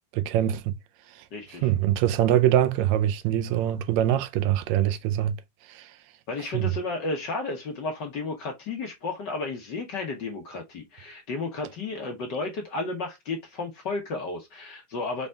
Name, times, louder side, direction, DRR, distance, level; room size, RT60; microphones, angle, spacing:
voice 1, 0.2-0.6 1.6-5.3 5.7-5.9 6.5-6.7, right 11 dB, 75° right, 1.8 m, -23 dB
voice 2, 1.3-1.7 6.3-15.3, left 3 dB, 55° left, 1.2 m, -33 dB
5.4 x 4.0 x 2.3 m
omnidirectional pair, 3.4 m